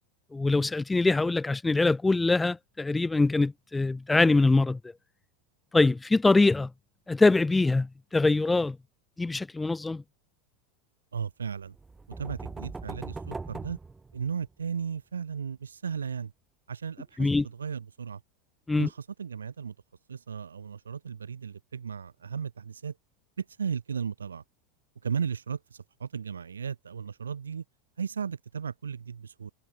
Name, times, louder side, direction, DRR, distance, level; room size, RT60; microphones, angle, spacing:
voice 1, 0.3-4.8 5.7-6.7 7.1-8.8 9.2-10.0 17.2-17.4 18.7-18.9, left 3 dB, 10° left, 0.5 m, -23 dB
voice 2, 11.1-11.7 12.2-13.8 14.1-16.3 16.7-18.2 18.8-19.7 20.1-22.9 23.4-24.4 25.0-25.6 26.0-27.6 28.0-29.5, right 6 dB, 90° right, 1.3 m, -35 dB
sound 1, 11.8-14.7, right 3 dB, 15° right, 2.7 m, -40 dB
hypercardioid pair, 90°, 0 cm